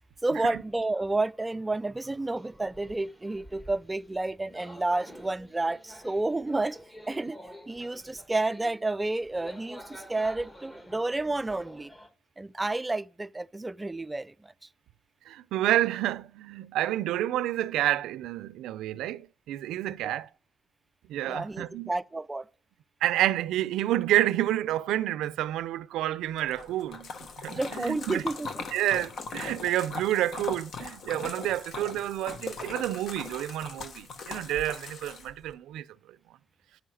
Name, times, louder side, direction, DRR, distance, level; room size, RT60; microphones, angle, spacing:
voice 1, 0.2-6.8 7.1-7.4 7.7-11.9 12.4-14.5 20.0-20.1 21.3-22.5 27.5-28.6, right 2 dB, 15° right, 0.3 m, -30 dB
sound 1, 2.0-12.1, equal, 15° left, 1.5 m, -49 dB
voice 2, 15.3-20.3 21.1-21.9 23.0-27.1 27.4-28.2 28.7-35.9, right 13 dB, 85° right, 0.4 m, -29 dB
Splash splatter, 26.4-35.5, left 4 dB, 60° left, 1.2 m, -40 dB
9.2 x 5.6 x 6.3 m
cardioid pair, 90°, 0 cm